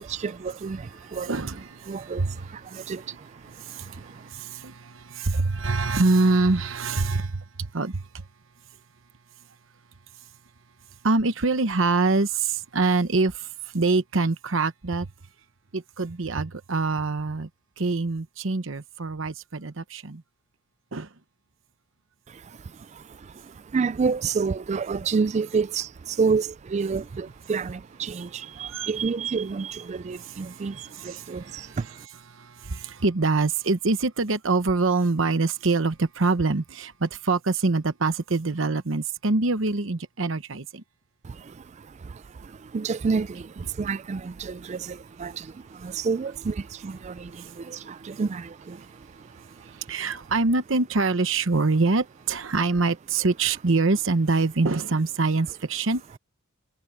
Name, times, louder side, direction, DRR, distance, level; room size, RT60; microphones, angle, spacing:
voice 1, 0.0-1.4 1.9-4.3 22.3-32.1 41.2-50.1, right 5 dB, 35° right, 0.3 m, -30 dB
voice 2, 1.2-2.4 2.7-2.9 3.4-8.2 11.0-13.5 13.7-15.1 15.7-17.5 17.8-20.2 20.9-21.1 28.7-28.9 30.2-30.7 30.9-31.8 32.3-40.8 47.4-47.5 49.6-56.2, right 3 dB, 65° right, 1.0 m, -25 dB
head